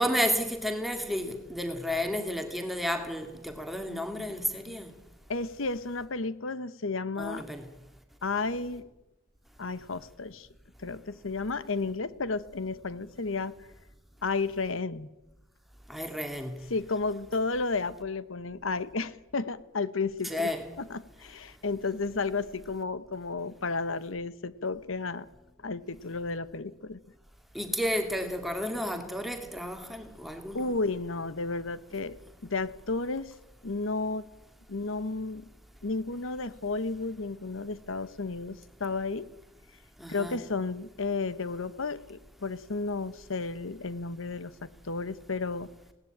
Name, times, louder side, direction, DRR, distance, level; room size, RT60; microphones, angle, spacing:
voice 1, 0.0-4.9 7.2-7.7 15.9-16.6 20.2-20.7 27.5-30.7 40.0-40.4, equal, ahead, 2.0 m, -32 dB
voice 2, 5.3-7.4 8.2-8.9 9.6-10.5 10.8-13.5 14.2-15.1 16.7-20.5 20.8-25.3 25.6-27.0 30.5-32.2 32.4-33.3 33.6-34.3 34.7-35.5 35.8-39.3 40.1-45.7, left 3 dB, 70° left, 1.0 m, -32 dB
20.0 x 17.5 x 8.8 m
head